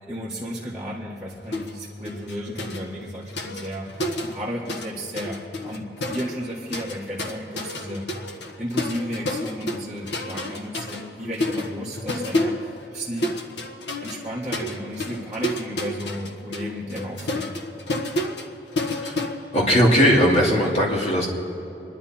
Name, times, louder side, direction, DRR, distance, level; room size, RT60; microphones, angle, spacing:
voice 1, 0.0-8.1 8.6-13.3 14.0-17.6, equal, 5° right, -9 dB, 1.8 m, -33 dB
sound 1, 1.5-1.8 2.0-4.9 5.2-20.1, left 1 dB, 85° left, 1.4 m, -30 dB
voice 2, 19.5-21.3, equal, 35° left, -3 dB, 2.7 m, -18 dB
28.5 x 11.0 x 4.4 m, 3.0 s
head